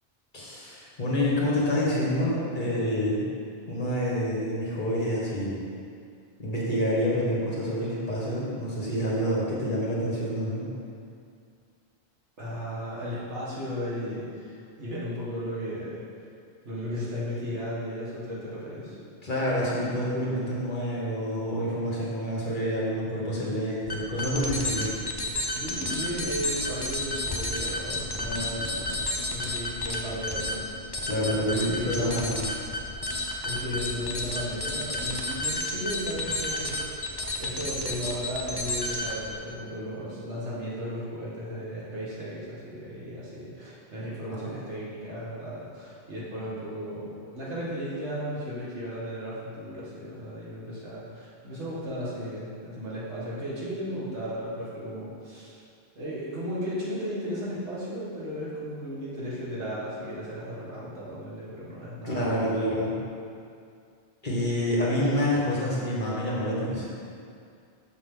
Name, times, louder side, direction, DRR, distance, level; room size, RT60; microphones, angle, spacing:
voice 1, 0.3-3.3 3.7-5.6 6.4-10.7 19.2-24.9 28.3-28.7 31.1-32.5 44.3-44.5 62.0-62.9 64.2-66.9, equal, 45° left, -5 dB, 1.6 m, -28 dB
voice 2, 12.4-16.0 16.6-19.0 25.3-29.0 29.3-30.7 31.0-32.1 33.4-55.6 56.0-62.5, equal, 90° right, -8 dB, 2.0 m, -35 dB
sound 1, 23.9-39.3, left 1 dB, 30° left, 0.6 m, -31 dB
6.8 x 6.2 x 3.8 m, 2.4 s
omnidirectional pair, 1.1 m